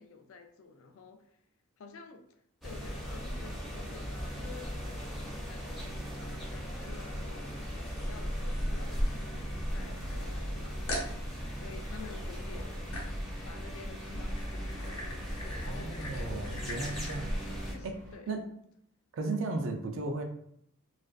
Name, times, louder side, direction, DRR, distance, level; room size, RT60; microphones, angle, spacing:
voice 1, 0.0-1.4 1.8-11.2 11.6-12.8 13.4-18.4, left 5 dB, 65° left, 6 dB, 0.3 m, -51 dB
sound 1, 2.6-17.8, equal, ahead, 0.4 m, -37 dB
Engine, 2.6-18.2, equal, 40° right, 0.7 m, -49 dB
sound 2, 7.8-9.9 10.3-10.4 10.9-11.2 12.9-13.3 14.0-17.3, left 1 dB, 80° left, 0.7 m, -43 dB
voice 2, 15.7-17.3 17.8-18.0 18.3-18.4 19.1-20.2, right 3 dB, 60° right, 4 dB, 0.4 m, -35 dB
2.4 x 2.2 x 2.3 m, 0.71 s
head